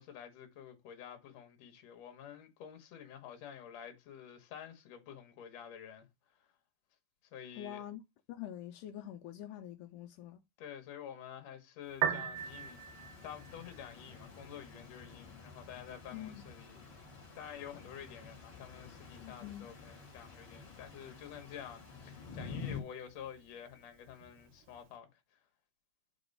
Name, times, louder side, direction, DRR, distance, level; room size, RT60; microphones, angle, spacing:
voice 1, 0.0-6.1 6.3-6.4 7.3-7.8 10.6-12.8 13.2-16.8 17.4-25.4, left 9 dB, 60° left, 2.1 m, -49 dB
voice 2, 7.6-8.0 8.3-10.4 16.1-16.4 19.2-19.7, left 12 dB, 85° left, 1.9 m, -45 dB
Piano, 11.9-24.9, right 9 dB, 80° right, 2.2 m, -45 dB
sound 1, 12.3-22.8, left 5 dB, 40° left, 1.7 m, -49 dB
6.9 x 3.0 x 5.3 m
omnidirectional pair, 4.3 m